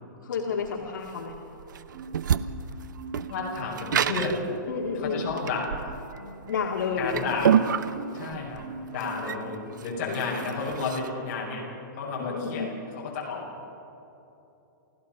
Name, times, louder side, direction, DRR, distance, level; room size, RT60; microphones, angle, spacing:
voice 1, 0.2-1.4 4.7-5.3 6.5-7.4 10.1-10.4 12.2-12.7, left 5 dB, 75° left, -1 dB, 2.1 m, -31 dB
sound 1, 0.6-11.1, right 8 dB, 70° right, 0.7 m, -29 dB
Marimba xylophone, 1.9-2.7 2.9-4.4 4.7-5.4 5.8-10.0 10.4-11.1 11.5-11.7, right 3 dB, 90° right, 3.1 m, -42 dB
voice 2, 3.3-4.4 5.0-5.8 7.0-7.5 8.1-8.6 8.9-11.6 12.0-12.7 13.0-13.4, left 4 dB, 35° left, -4 dB, 6.0 m, -32 dB
29.0 x 16.0 x 5.6 m, 3.0 s
hypercardioid pair, 180°, 11 cm